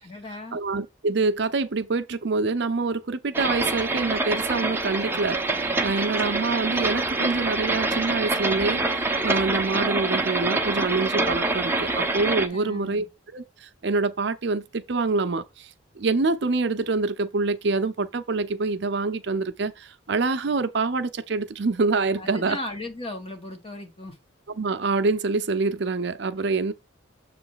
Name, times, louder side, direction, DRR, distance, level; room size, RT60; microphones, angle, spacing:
voice 1, 0.0-0.6 12.5-13.1 22.2-24.2, left 2 dB, 30° left, 1.5 m, -37 dB
voice 2, 0.5-5.4 5.8-13.1 13.3-15.7 16.0-22.6 24.6-26.7, right 3 dB, 55° right, 0.6 m, -26 dB
sound 1, 3.3-12.5, right 2 dB, 10° right, 0.7 m, -26 dB
7.1 x 3.2 x 5.6 m
head